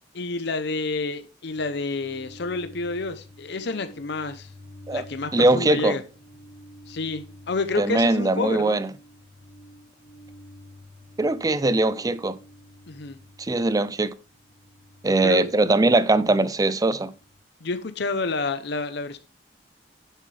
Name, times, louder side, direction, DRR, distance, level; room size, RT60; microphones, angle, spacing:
voice 1, 0.1-4.5 4.9-6.0 6.9-8.8 12.9-13.2 15.2-15.5 17.6-19.2, left 3 dB, 70° left, 0.7 m, -29 dB
sound 1, 1.5-17.4, equal, 40° right, 1.9 m, -49 dB
voice 2, 5.3-6.0 7.8-8.9 11.2-12.4 13.4-14.1 15.0-17.1, right 2 dB, 20° right, 0.5 m, -21 dB
10.5 x 7.4 x 3.3 m
head